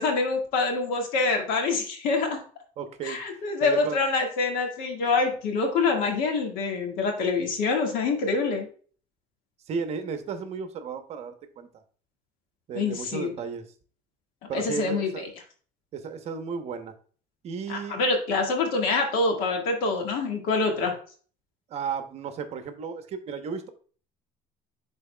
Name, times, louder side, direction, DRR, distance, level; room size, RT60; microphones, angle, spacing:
voice 1, 0.0-2.4 3.0-8.7 12.7-13.3 14.4-15.3 17.7-20.9, left 3 dB, 80° left, 3 dB, 1.7 m, -26 dB
voice 2, 2.8-3.2 3.6-4.0 9.7-11.7 12.7-13.7 14.5-15.3 15.9-16.9 17.4-18.0 21.7-23.7, right 6 dB, 50° right, 8 dB, 0.9 m, -34 dB
11.0 x 4.0 x 2.2 m, 0.44 s
cardioid pair, 135°, 14 cm